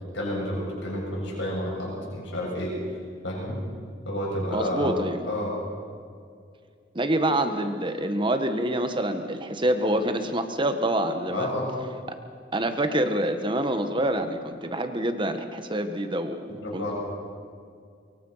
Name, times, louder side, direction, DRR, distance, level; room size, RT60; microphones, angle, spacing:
voice 1, 0.1-2.8 3.2-3.6 4.0-4.9 5.2-5.5 11.3-11.7 16.5-16.9, left 1 dB, 70° left, -4 dB, 7.2 m, -30 dB
voice 2, 4.5-5.2 6.9-11.5 12.5-16.9, right 1 dB, 25° right, 7 dB, 1.6 m, -26 dB
24.0 x 23.5 x 5.8 m, 2.2 s
head